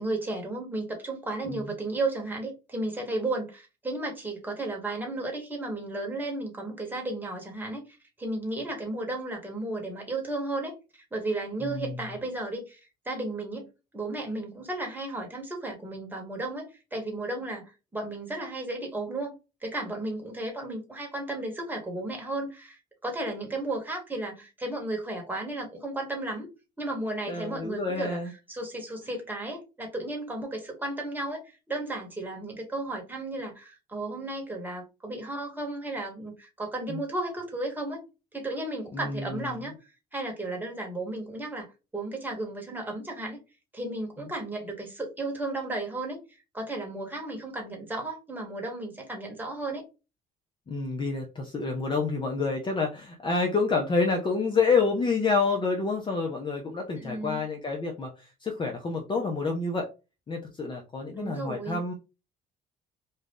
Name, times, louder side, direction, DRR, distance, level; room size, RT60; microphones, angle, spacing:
voice 1, 0.0-12.8 13.0-19.4 19.6-26.5 26.8-28.2 28.5-38.0 38.3-39.7 40.1-41.7 41.9-43.4 43.7-46.2 46.5-49.8 56.9-57.4 61.2-61.8, right 2 dB, 10° right, 1.2 m, -34 dB
voice 2, 11.6-12.0 27.3-28.3 36.9-37.0 38.9-39.6 44.2-44.3 50.7-59.9 60.3-61.9, left 4 dB, 30° left, 0.6 m, -28 dB
2.7 x 2.3 x 3.5 m
cardioid pair, 110°, 17 cm